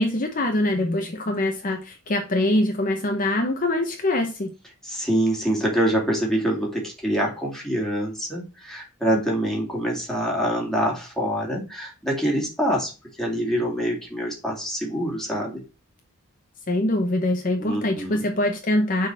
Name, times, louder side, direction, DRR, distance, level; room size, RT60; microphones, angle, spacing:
voice 1, 0.0-4.5 16.7-19.1, left 1 dB, 40° left, 3 dB, 0.9 m, -23 dB
voice 2, 4.8-12.9 13.2-15.6 17.6-18.2, equal, ahead, -2 dB, 2.4 m, -25 dB
6.6 x 4.0 x 6.2 m, 0.31 s
head